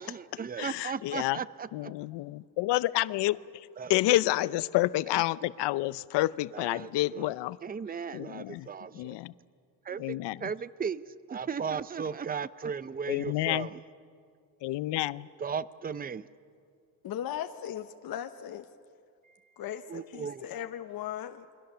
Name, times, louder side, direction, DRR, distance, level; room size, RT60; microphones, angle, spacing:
voice 1, 0.0-1.9 3.8-4.2 6.5-7.3 7.6-9.2 9.9-13.8 15.4-16.3 19.9-20.5, right 6 dB, 20° right, 16 dB, 0.6 m, -36 dB
voice 2, 0.6-1.4 1.7-3.4 3.9-7.6 8.1-8.7 8.9-9.3 10.0-10.5 13.1-13.7 14.6-15.3, left 17 dB, 90° left, 17 dB, 0.7 m, -29 dB
voice 3, 17.0-18.7 19.6-21.5, left 10 dB, 60° left, 6 dB, 1.0 m, -38 dB
28.5 x 23.0 x 6.8 m, 2.2 s
cardioid pair, 105°, 40 cm